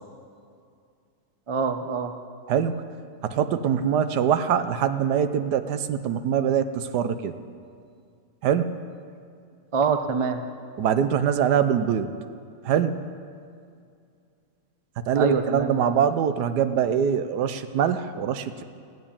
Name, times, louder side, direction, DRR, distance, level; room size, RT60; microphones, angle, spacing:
voice 1, 1.5-2.1 9.7-10.4 15.2-16.0, right 5 dB, 35° right, 7 dB, 0.5 m, -25 dB
voice 2, 2.5-2.8 3.2-7.3 8.4-8.8 10.8-12.1 12.6-13.0 15.0-18.6, right 8 dB, 80° right, 11 dB, 1.3 m, -23 dB
15.0 x 9.4 x 8.7 m, 2.3 s
omnidirectional pair, 1.8 m